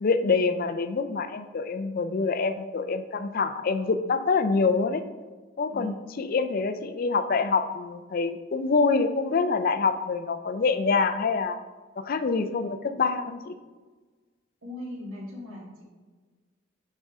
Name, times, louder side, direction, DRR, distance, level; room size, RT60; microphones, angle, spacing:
voice 1, 0.0-5.0 5.6-11.6 12.0-13.5, left 4 dB, 45° left, 10 dB, 0.4 m, -26 dB
voice 2, 14.6-15.8, left 1 dB, 90° right, -2 dB, 1.8 m, -39 dB
6.6 x 3.6 x 6.0 m, 1.4 s
head